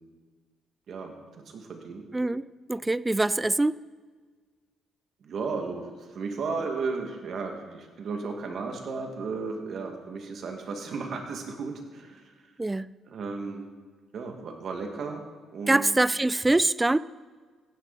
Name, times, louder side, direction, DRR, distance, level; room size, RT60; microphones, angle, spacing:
voice 1, 0.9-2.1 5.2-12.3 13.1-13.7 14.1-15.2 15.5-15.9, right 4 dB, 60° right, 3 dB, 1.9 m, -34 dB
voice 2, 2.1-3.8 12.6-12.9 15.7-17.0, right 2 dB, 15° right, 18 dB, 0.3 m, -24 dB
15.5 x 9.6 x 4.2 m, 1.5 s
cardioid pair, 90°, 0 cm